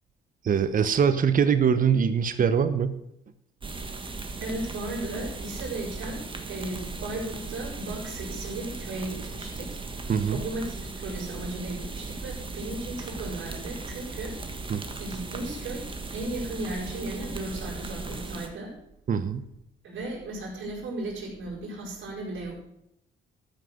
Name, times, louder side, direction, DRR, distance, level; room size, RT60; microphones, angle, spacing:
voice 1, 0.4-3.0 10.1-10.4 14.7-14.8 19.1-19.4, right 7 dB, 45° right, 10 dB, 0.9 m, -23 dB
sound 1, 3.6-18.5, right 3 dB, 25° right, 1.5 m, -37 dB
voice 2, 4.4-9.8 10.3-14.4 15.0-18.7 19.8-22.5, right 2 dB, 70° right, -4 dB, 4.8 m, -35 dB
13.0 x 5.8 x 6.6 m, 0.78 s
cardioid pair, 90°, 20 cm